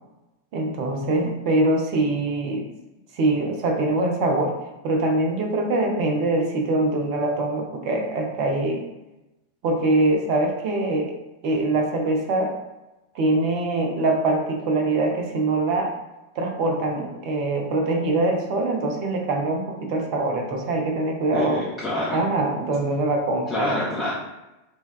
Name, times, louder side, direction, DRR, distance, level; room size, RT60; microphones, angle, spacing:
voice 1, 0.5-2.7 3.1-4.5 4.8-8.8 9.6-11.1 11.4-12.5 13.1-15.9 16.4-21.6 22.1-23.8, right 2 dB, 45° right, 2 dB, 0.5 m, -23 dB
voice 2, 21.3-22.2 23.5-24.1, left 1 dB, 20° left, -7 dB, 0.6 m, -26 dB
3.3 x 2.2 x 2.3 m, 0.99 s
figure-of-eight pair, 90°, 0 cm